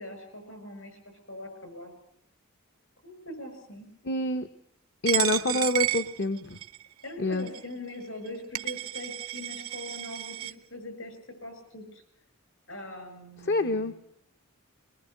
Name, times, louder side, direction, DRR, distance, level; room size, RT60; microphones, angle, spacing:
voice 1, 0.0-1.9 3.0-3.9 5.4-5.6 7.0-12.0 12.7-13.9, left 1 dB, 70° left, 8 dB, 7.2 m, -42 dB
voice 2, 4.0-4.5 5.0-6.6 7.2-7.5 13.4-13.9, left 2 dB, 50° left, 9 dB, 1.0 m, -27 dB
Coin (dropping), 5.1-6.8 7.5-7.6 8.3-8.4 8.5-10.5, right 14 dB, 80° right, 0.9 m, -31 dB
22.0 x 21.0 x 8.1 m, 0.71 s
head